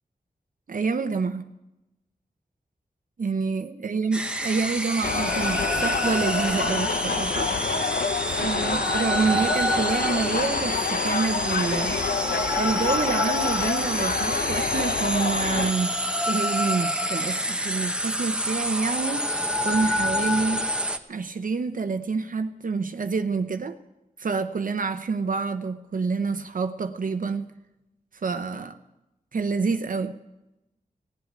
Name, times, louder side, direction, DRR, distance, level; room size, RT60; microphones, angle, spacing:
voice 1, 0.7-1.5 3.2-8.0 8.4-12.0 12.6-15.9 16.3-20.6 21.1-23.8 24.2-27.5 28.2-28.8 29.3-30.2, right 4 dB, 65° right, 0.7 m, -27 dB
sound 1, 4.1-21.0, equal, 5° right, 1.0 m, -28 dB
sound 2, 5.0-15.7, left 5 dB, 80° left, 0.7 m, -28 dB
17.0 x 8.1 x 9.3 m
wide cardioid pair, 75°, 15 cm